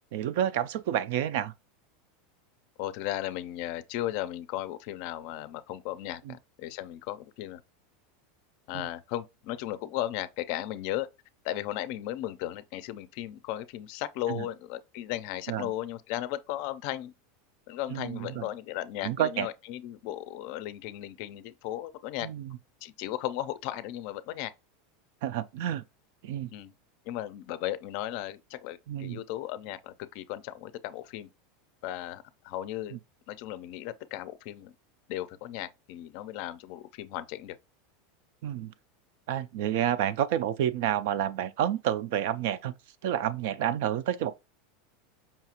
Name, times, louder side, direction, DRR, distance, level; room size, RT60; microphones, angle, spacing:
voice 1, 0.1-1.5 6.3-6.4 8.7-8.9 14.3-14.5 15.5-15.7 17.9-18.5 19.0-19.5 22.2-22.6 25.2-25.8 26.2-26.5 28.9-29.2 32.9-33.0 38.4-38.7 39.3-42.7 43.0-44.3, right 10 dB, 60° right, 0.4 m, -29 dB
voice 2, 2.8-7.6 8.7-11.1 11.4-17.1 17.7-22.3 22.8-24.5 26.5-26.7 27.1-31.3 31.8-33.0 33.3-34.7 35.1-37.6, left 13 dB, 50° left, 0.4 m, -36 dB
5.5 x 2.4 x 2.9 m
supercardioid pair, 165°, 0 cm